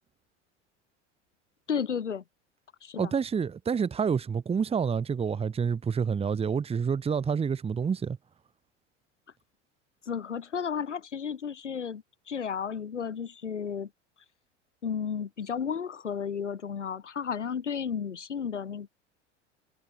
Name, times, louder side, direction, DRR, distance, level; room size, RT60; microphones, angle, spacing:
voice 1, 1.7-2.2 2.8-3.1 10.1-13.9 14.8-18.9, left 7 dB, 75° left, 4.4 m, -33 dB
voice 2, 3.0-8.2, right 6 dB, 15° right, 1.3 m, -28 dB
figure-of-eight pair, 80°, 36 cm